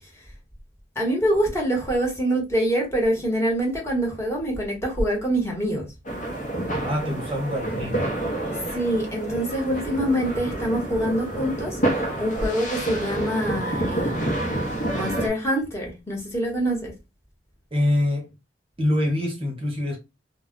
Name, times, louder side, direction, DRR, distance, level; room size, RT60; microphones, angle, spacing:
voice 1, 0.9-5.9 8.5-14.5 14.9-16.9, right 1 dB, 15° left, 1.1 m, -25 dB
sound 1, 6.0-15.3, right 1 dB, 45° left, 0.8 m, -28 dB
voice 2, 6.8-8.1 17.7-18.3 18.8-20.0, left 1 dB, 30° right, 0.8 m, -25 dB
2.3 x 2.1 x 3.7 m
head